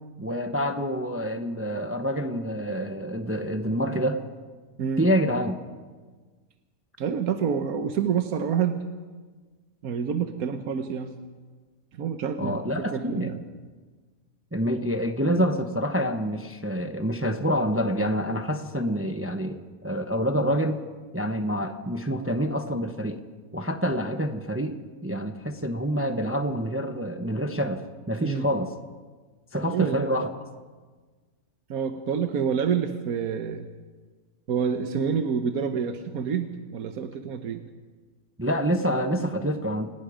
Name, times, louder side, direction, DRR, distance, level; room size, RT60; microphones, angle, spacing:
voice 1, 0.2-4.2 5.0-5.6 12.4-13.3 14.5-20.8 21.1-23.2 23.5-28.7 29.5-30.3 38.4-39.9, equal, 10° right, 6 dB, 0.9 m, -27 dB
voice 2, 7.0-8.8 9.8-11.1 11.9-12.6 12.9-13.4 28.2-28.5 29.7-30.1 31.7-33.7 34.5-37.6, right 7 dB, 85° right, 7 dB, 1.5 m, -27 dB
29.0 x 18.0 x 5.1 m, 1.4 s
omnidirectional pair, 1.5 m